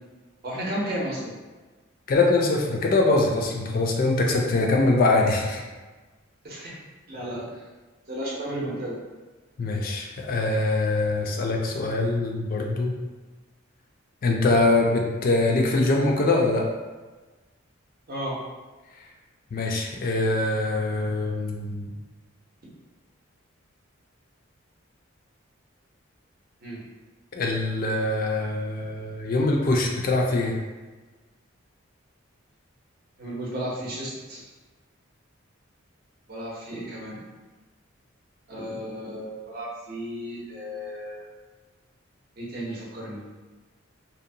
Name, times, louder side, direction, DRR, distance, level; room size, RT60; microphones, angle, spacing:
voice 1, 0.4-1.4 6.4-6.7 7.1-7.6 8.1-9.0 18.1-18.4 26.6-26.8 33.2-34.4 36.3-37.2 38.5-41.2 42.4-43.2, equal, 50° right, -5 dB, 0.6 m, -33 dB
voice 2, 2.1-5.6 9.6-12.9 14.2-16.6 19.5-21.9 27.3-30.6, left 2 dB, 45° left, 1 dB, 0.3 m, -23 dB
2.7 x 2.1 x 2.6 m, 1.3 s
head